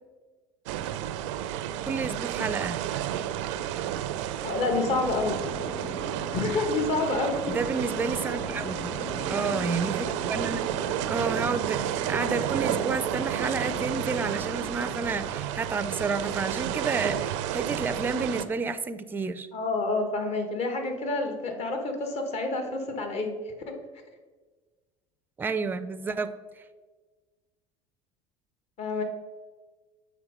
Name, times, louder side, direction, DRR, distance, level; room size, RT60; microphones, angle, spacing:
sound 1, 0.7-18.4, right 11 dB, 85° right, 0.4 m, -31 dB
voice 1, 1.9-2.8 7.5-9.0 9.3-10.7 11.1-19.5 25.4-26.4, right 4 dB, 15° right, 11 dB, 0.4 m, -30 dB
voice 2, 4.4-5.4 6.3-7.5 19.5-23.4 23.7-23.8 28.8-29.0, left 3 dB, 45° left, 5 dB, 1.3 m, -28 dB
sound 2, 4.5-15.3, left 1 dB, 30° left, 1.5 m, -40 dB
7.3 x 3.5 x 5.1 m, 1.4 s
supercardioid pair, 95°, 15 cm